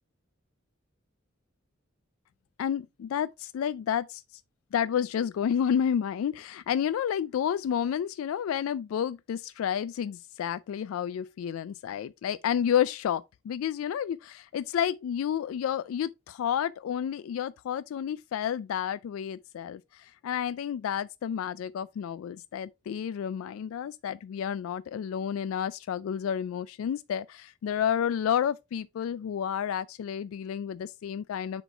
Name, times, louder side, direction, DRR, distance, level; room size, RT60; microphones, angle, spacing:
voice 1, 2.6-4.2 4.7-31.6, left 8 dB, 90° left, 0.3 m, -30 dB
6.9 x 4.5 x 3.4 m
head